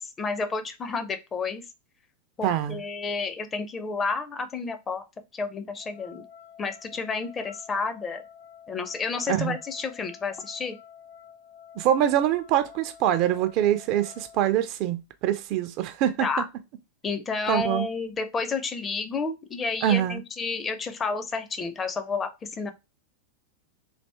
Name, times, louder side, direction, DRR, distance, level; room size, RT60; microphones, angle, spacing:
voice 1, 0.2-1.6 2.4-5.0 5.3-6.2 6.6-8.2 8.7-10.8 16.2-16.5 17.0-22.7, left 4 dB, 20° left, 0.5 m, -30 dB
voice 2, 2.4-2.8 9.3-9.5 11.8-16.3 17.5-17.9 19.8-20.2, right 11 dB, 40° right, 0.3 m, -24 dB
sound 1, 5.8-14.4, left 8 dB, 65° left, 1.1 m, -49 dB
3.3 x 2.5 x 3.2 m
figure-of-eight pair, 90°, 0 cm